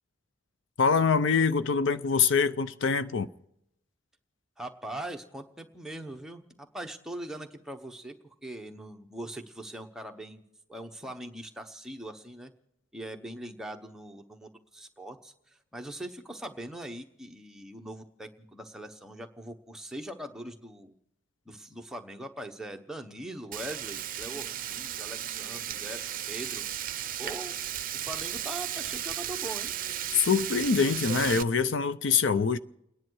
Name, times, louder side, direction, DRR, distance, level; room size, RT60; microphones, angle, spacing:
voice 1, 0.8-3.3 30.3-32.6, left 5 dB, 65° left, 0.5 m, -24 dB
voice 2, 4.6-6.4 6.7-10.4 10.7-12.5 12.9-20.9 21.5-26.6 27.2-27.5 27.9-29.7, right 1 dB, 5° right, 1.0 m, -41 dB
Frying (food), 23.5-31.4, right 11 dB, 45° right, 0.6 m, -35 dB
30.0 x 10.5 x 4.7 m
head